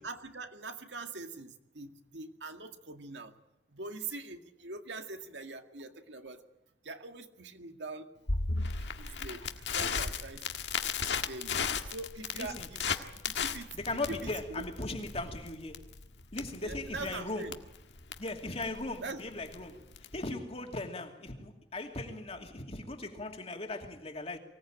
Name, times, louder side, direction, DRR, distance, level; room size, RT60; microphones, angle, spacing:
voice 1, 0.0-3.3 3.7-6.4 6.9-8.1 8.8-10.5 11.0-11.6 11.9-13.0 13.3-13.7 14.5-14.7 16.6-17.6 19.0-19.2, right 3 dB, 80° right, 2.1 m, -43 dB
Crackle, 8.3-20.3, left 5 dB, 75° left, 1.7 m, -36 dB
voice 2, 12.3-12.7 13.7-15.9 16.3-17.5 18.2-19.8 20.1-24.4, left 2 dB, 35° left, 2.6 m, -38 dB
24.5 x 17.5 x 8.9 m
head